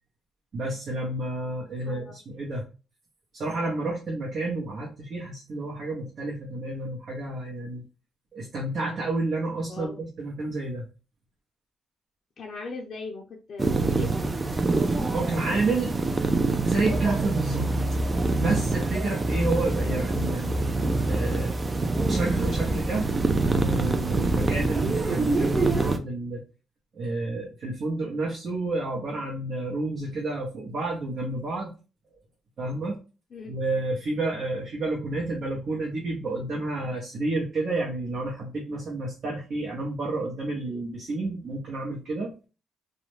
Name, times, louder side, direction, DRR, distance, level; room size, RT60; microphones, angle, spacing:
voice 1, 0.5-2.6 3.3-7.8 8.3-10.9 15.1-15.9 16.6-17.7 18.4-20.6 21.1-21.5 22.1-23.1 23.4-26.4 26.9-31.7 32.6-33.0 33.5-42.3, right 2 dB, 55° right, -3 dB, 0.8 m, -30 dB
voice 2, 1.8-2.2 9.7-10.0 12.4-14.1 33.3-33.5 40.6-40.8, left 4 dB, 55° left, -1 dB, 0.5 m, -39 dB
sound 1, 13.6-26.0, right 3 dB, 25° right, 0.3 m, -25 dB
2.4 x 2.1 x 3.0 m, 0.33 s
cardioid pair, 90°, 0 cm